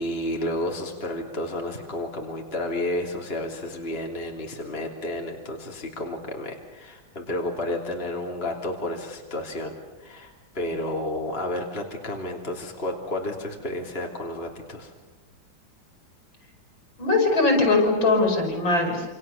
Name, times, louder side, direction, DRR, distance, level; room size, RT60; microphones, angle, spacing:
voice 1, 0.0-14.9, left 1 dB, 30° left, 1 dB, 3.3 m, -31 dB
voice 2, 17.0-19.1, left 3 dB, 80° left, 3 dB, 7.1 m, -21 dB
28.5 x 27.5 x 7.1 m, 1.1 s
omnidirectional pair, 2.1 m